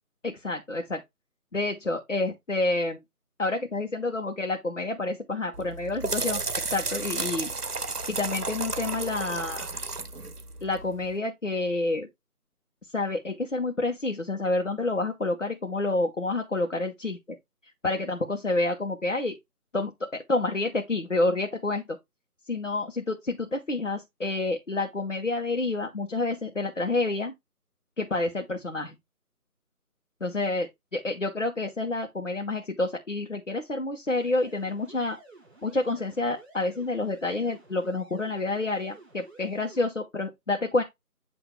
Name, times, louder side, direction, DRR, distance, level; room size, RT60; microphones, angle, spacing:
voice 1, 0.2-1.0 1.5-3.0 3.4-6.4 6.7-7.5 8.1-9.7 10.6-12.1 12.9-17.4 17.8-19.4 19.7-22.0 22.5-27.3 28.0-29.0 30.2-35.2 35.6-40.8, left 2 dB, 50° left, 1.1 m, -28 dB
sound 1, 5.5-11.1, right 3 dB, 75° right, 1.0 m, -33 dB
sound 2, 34.1-39.9, right 2 dB, 45° right, 5.2 m, -52 dB
8.3 x 2.8 x 4.5 m
figure-of-eight pair, 170°, 46 cm